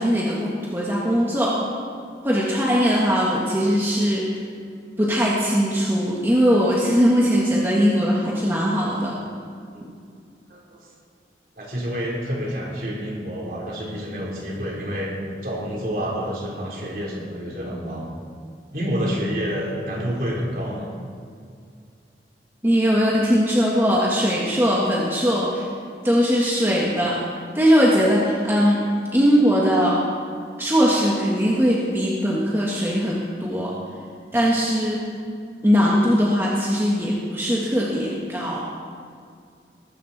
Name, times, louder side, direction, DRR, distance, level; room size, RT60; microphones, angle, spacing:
voice 1, 0.0-1.5 2.2-4.2 5.0-9.2 22.6-25.7 26.0-27.2 27.5-28.8 29.1-30.0 30.6-33.7 34.3-35.0 35.6-38.6, equal, 15° right, -5 dB, 1.8 m, -20 dB
voice 2, 11.6-15.1 15.4-18.1 18.7-20.9, equal, 55° right, -3 dB, 4.0 m, -28 dB
19.0 x 15.0 x 4.3 m, 2.2 s
head